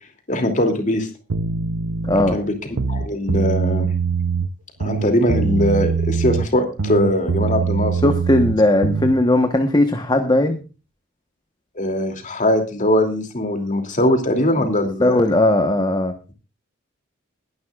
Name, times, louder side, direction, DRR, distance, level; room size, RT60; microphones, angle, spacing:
voice 1, 0.3-1.1 2.3-3.9 4.8-8.0 11.8-15.3, left 1 dB, 35° left, 5 dB, 2.8 m, -21 dB
sound 1, 1.3-2.4 2.7-4.5 4.8-6.5 6.8-9.2, right 5 dB, 90° right, 0.8 m, -22 dB
voice 2, 2.0-2.4 8.0-10.6 14.6-16.1, left 1 dB, 20° left, 6 dB, 1.2 m, -18 dB
21.5 x 11.0 x 2.5 m, 0.33 s
head